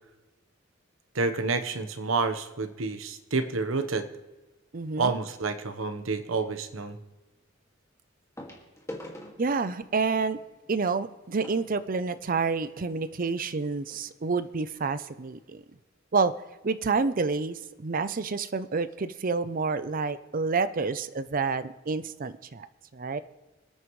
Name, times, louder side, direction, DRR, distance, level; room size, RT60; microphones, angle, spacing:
voice 1, 1.1-4.1 5.0-7.0, right 4 dB, 85° right, 9 dB, 1.1 m, -29 dB
voice 2, 4.7-5.2 9.4-10.4 10.7-15.6 16.1-16.3 16.6-22.7 22.9-23.2, right 4 dB, 45° right, 13 dB, 0.6 m, -28 dB
sound 1, 8.4-12.8 13.5-13.6 13.8-14.0 14.6-14.7, left 1 dB, 15° left, 2.1 m, -46 dB
26.0 x 9.3 x 3.2 m, 1.1 s
head